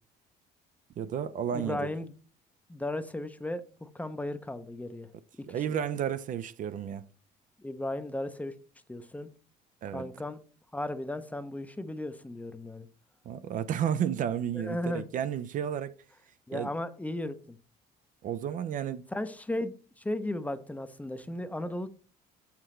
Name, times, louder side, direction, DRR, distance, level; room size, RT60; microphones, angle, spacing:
voice 1, 1.0-1.9 5.5-7.1 9.8-10.1 13.3-16.0 16.5-16.7 18.2-19.0, right 9 dB, 50° right, 0.4 m, -32 dB
voice 2, 1.5-2.1 2.7-5.1 5.4-5.6 7.6-8.5 8.9-9.3 9.9-10.4 10.7-12.9 14.5-15.0 16.5-17.6 19.1-21.9, left 1 dB, 10° left, 0.5 m, -35 dB
6.5 x 5.8 x 3.1 m
cardioid pair, 110°, 17 cm